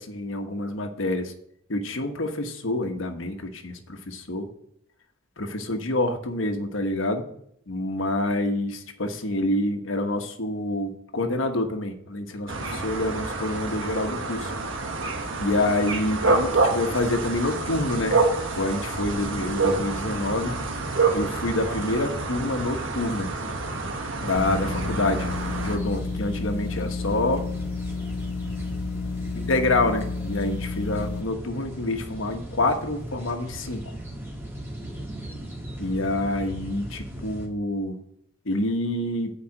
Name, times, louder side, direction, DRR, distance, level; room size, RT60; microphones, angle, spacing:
voice 1, 0.0-1.3 1.7-4.5 5.4-7.3 7.7-14.5 15.4-18.2 18.5-20.6 21.1-23.3 24.2-25.3 25.6-27.4 29.5-33.8 35.8-38.0 38.4-39.3, left 2 dB, 80° left, 6 dB, 1.2 m, -27 dB
sound 1, 12.5-25.8, right 3 dB, 75° right, 1.3 m, -27 dB
Corn field and birds, 19.1-37.5, right 1 dB, 10° right, 1.8 m, -39 dB
sound 2, 24.4-31.2, left 4 dB, 60° left, 0.4 m, -31 dB
8.8 x 5.1 x 7.8 m, 0.71 s
head